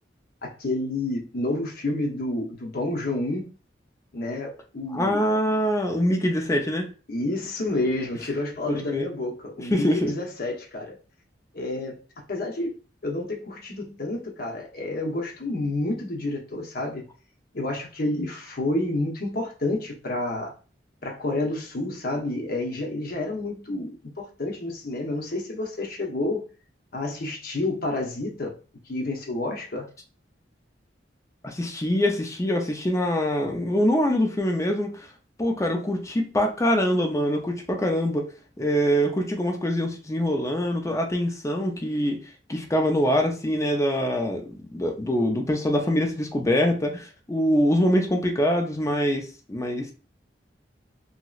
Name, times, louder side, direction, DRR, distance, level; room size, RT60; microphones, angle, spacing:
voice 1, 0.4-3.5 4.1-5.2 7.1-11.0 11.5-12.0 12.3-12.7 13.0-17.0 17.5-20.5 21.0-26.4 26.9-28.5 28.9-29.9, left 2 dB, 55° left, 0.8 m, -29 dB
voice 2, 4.9-6.9 8.7-9.0 9.6-10.1 31.4-35.1 35.4-38.3 38.6-42.2 42.5-49.9, equal, 15° left, 0.4 m, -24 dB
2.9 x 2.8 x 2.3 m
head